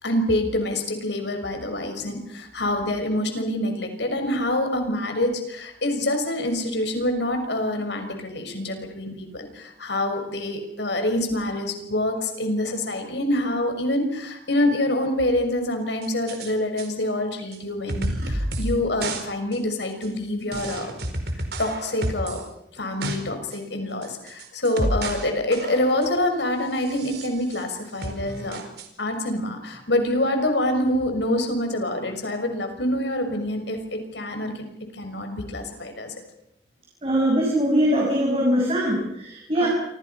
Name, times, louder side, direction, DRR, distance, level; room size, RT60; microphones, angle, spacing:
voice 1, 0.0-20.9 21.3-22.4 22.8-28.6 29.0-34.6 34.9-36.2 39.6-39.7, left 1 dB, 90° left, 6 dB, 6.0 m, -26 dB
sound 1, 16.0-16.5 16.8-16.9 17.5-17.6 17.9-18.8 19.0-19.2 19.5-19.6 20.0-20.1 20.5-22.4 22.8-23.2 23.5-23.6 24.0-25.3 25.5-26.2 26.8-27.6 28.0-28.9, right 1 dB, 70° right, 4.6 m, -30 dB
voice 2, 37.0-39.7, equal, 35° right, -2 dB, 6.6 m, -22 dB
28.0 x 26.5 x 5.8 m, 0.76 s
head